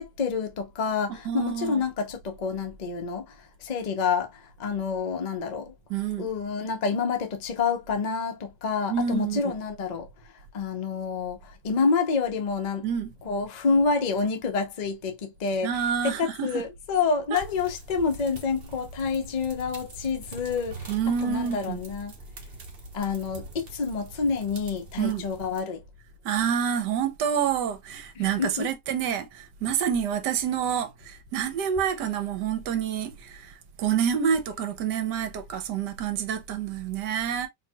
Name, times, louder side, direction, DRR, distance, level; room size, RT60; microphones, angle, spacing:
voice 1, 0.0-3.3 3.6-5.7 6.2-10.1 10.5-12.9 13.2-22.1 22.9-25.8 28.2-28.7, left 5 dB, 65° left, 0.4 m, -28 dB
voice 2, 1.1-1.8 5.9-6.3 8.9-9.6 12.8-13.1 15.6-16.7 17.3-17.4 20.9-21.8 25.0-25.2 26.2-37.5, right 8 dB, 70° right, 1.3 m, -28 dB
sound 1, 17.4-25.6, right 2 dB, 45° right, 0.8 m, -44 dB
4.4 x 3.1 x 2.3 m
omnidirectional pair, 2.0 m